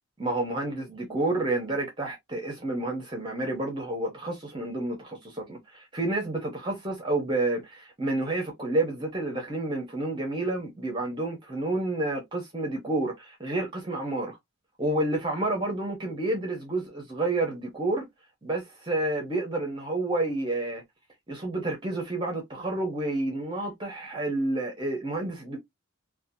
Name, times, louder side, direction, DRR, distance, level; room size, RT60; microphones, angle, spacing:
voice 1, 0.2-14.4 14.8-18.0 18.4-20.8 21.3-25.6, right 2 dB, 20° right, 0.7 m, -29 dB
2.8 x 2.2 x 2.6 m
head